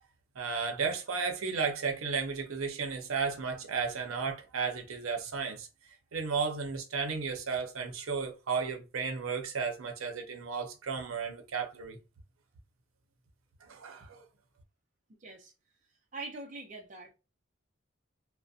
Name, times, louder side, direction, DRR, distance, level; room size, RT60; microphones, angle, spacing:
voice 1, 0.4-5.7 6.1-12.0 13.6-14.2, right 5 dB, 90° right, 0.6 m, -34 dB
voice 2, 15.2-15.5 16.1-17.1, right 3 dB, 35° right, 0.5 m, -43 dB
2.6 x 2.1 x 2.3 m
head